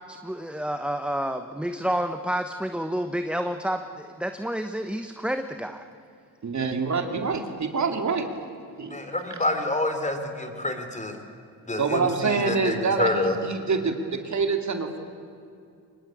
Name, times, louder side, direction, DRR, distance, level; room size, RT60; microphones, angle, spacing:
voice 1, 0.1-5.8, equal, 5° right, 7 dB, 1.1 m, -29 dB
voice 2, 6.4-8.3 8.8-9.0 9.3-9.4 11.8-15.0, right 4 dB, 45° right, 5 dB, 2.7 m, -26 dB
voice 3, 8.9-11.2 11.7-13.3, left 2 dB, 20° left, 7 dB, 3.8 m, -28 dB
24.5 x 21.0 x 8.7 m, 2.4 s
cardioid pair, 75°, 39 cm